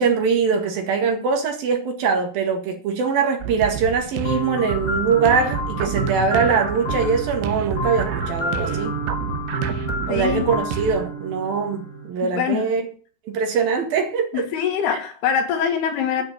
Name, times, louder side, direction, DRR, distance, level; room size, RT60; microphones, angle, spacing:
voice 1, 0.0-9.0 10.1-12.8 13.3-14.5 14.9-15.0, right 5 dB, 60° right, 3.6 m, -22 dB
sound 1, 3.4-11.1, right 8 dB, 85° right, 3.2 m, -30 dB
sound 2, 4.2-12.1, equal, 20° left, 5.6 m, -29 dB
voice 2, 10.1-10.5 12.4-12.7 14.3-16.2, left 8 dB, 70° left, 3.6 m, -23 dB
11.0 x 6.3 x 9.0 m
omnidirectional pair, 5.0 m